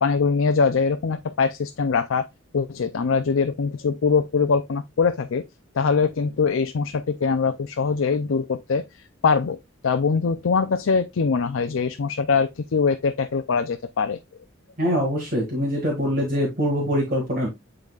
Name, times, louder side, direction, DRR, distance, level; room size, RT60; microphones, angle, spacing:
voice 1, 0.0-2.3 2.5-5.4 5.7-14.2, left 5 dB, 85° left, 0.5 m, -23 dB
voice 2, 14.8-17.5, equal, 45° right, 2.0 m, -23 dB
10.5 x 4.0 x 2.4 m
head